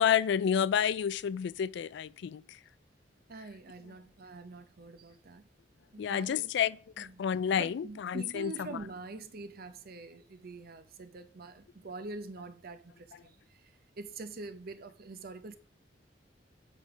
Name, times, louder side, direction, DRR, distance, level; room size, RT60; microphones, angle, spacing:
voice 1, 0.0-2.6 6.0-8.7, left 8 dB, 70° left, 0.3 m, -30 dB
voice 2, 3.3-5.5 5.9-6.5 7.0-7.3 7.6-15.5, right 3 dB, 55° right, 0.8 m, -45 dB
7.5 x 5.2 x 4.8 m
head